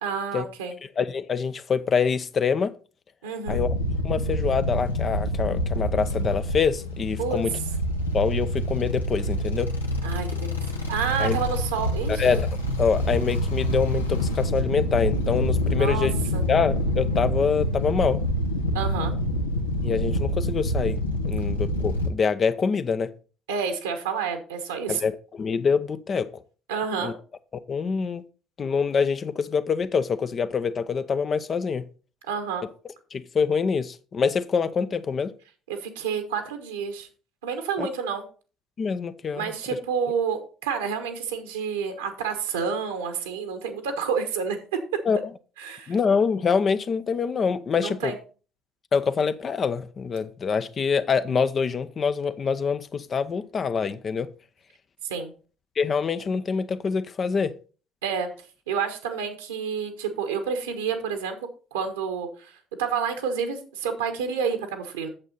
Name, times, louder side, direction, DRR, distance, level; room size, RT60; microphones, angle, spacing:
voice 1, 0.0-0.8 3.2-3.6 7.2-7.4 10.0-10.6 10.9-12.2 15.7-16.4 18.7-19.1 23.5-25.0 26.7-27.1 32.3-32.7 35.7-37.1 37.4-38.2 39.4-44.6 45.6-45.9 47.8-48.2 55.0-55.3 58.0-58.3 58.7-61.4 61.7-62.5 62.8-65.1, right 6 dB, 70° right, 1.3 m, -29 dB
voice 2, 1.0-2.7 3.5-3.7 4.0-7.5 8.1-9.7 11.2-11.4 12.2-12.5 12.8-16.1 16.5-18.2 19.8-21.0 21.3-23.1 24.9-26.3 27.0-27.1 27.7-28.2 28.6-31.9 33.1-35.3 37.8-37.9 38.8-39.5 45.1-45.3 45.9-48.1 48.9-54.3 55.8-57.5, left 5 dB, 35° left, 0.7 m, -25 dB
sound 1, 3.5-22.1, equal, 85° left, 1.1 m, -26 dB
8.8 x 7.2 x 4.1 m
figure-of-eight pair, 55°, 0 cm